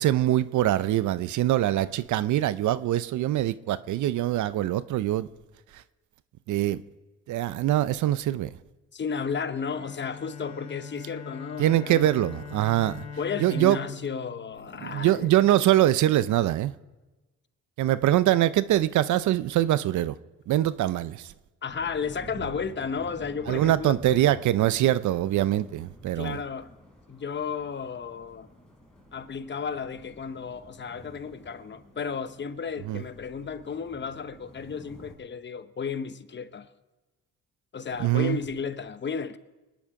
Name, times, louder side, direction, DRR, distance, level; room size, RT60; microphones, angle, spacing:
voice 1, 0.0-5.3 6.5-6.8 7.3-8.5 11.6-13.0 13.4-13.8 14.8-16.7 17.8-20.1 20.5-21.3 23.5-26.4 32.9-33.0 38.0-38.4, right 13 dB, 75° right, 0.6 m, -23 dB
voice 2, 8.9-12.2 13.2-15.3 21.6-23.9 26.2-26.7 27.1-28.5 29.1-36.7 37.7-39.4, left 6 dB, 35° left, 0.9 m, -33 dB
Bowed string instrument, 9.7-15.6, left 6 dB, 60° left, 4.0 m, -42 dB
sound 1, 21.7-35.1, equal, 5° left, 5.0 m, -50 dB
25.5 x 10.0 x 4.8 m
cardioid pair, 90°, 30 cm